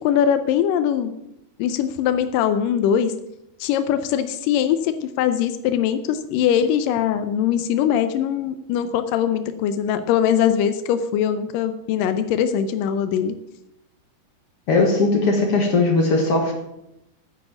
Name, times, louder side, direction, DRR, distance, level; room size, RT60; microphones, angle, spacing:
voice 1, 0.0-1.1 1.6-3.1 3.6-13.4, left 9 dB, 80° left, 10 dB, 2.0 m, -21 dB
voice 2, 14.7-16.5, left 3 dB, 50° left, 2 dB, 1.8 m, -18 dB
9.9 x 8.5 x 7.2 m, 0.84 s
omnidirectional pair, 4.6 m